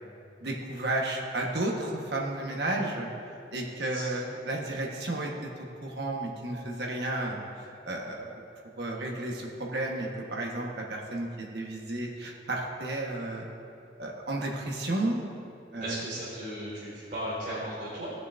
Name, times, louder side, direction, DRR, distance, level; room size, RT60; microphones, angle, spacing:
voice 1, 0.4-3.1 3.5-7.4 7.8-8.4 8.8-13.5 14.0-15.2 15.7-16.0, right 2 dB, 65° right, -1 dB, 1.4 m, -32 dB
voice 2, 15.8-18.1, equal, 45° right, -9 dB, 2.4 m, -36 dB
18.0 x 6.9 x 2.7 m, 2.7 s
head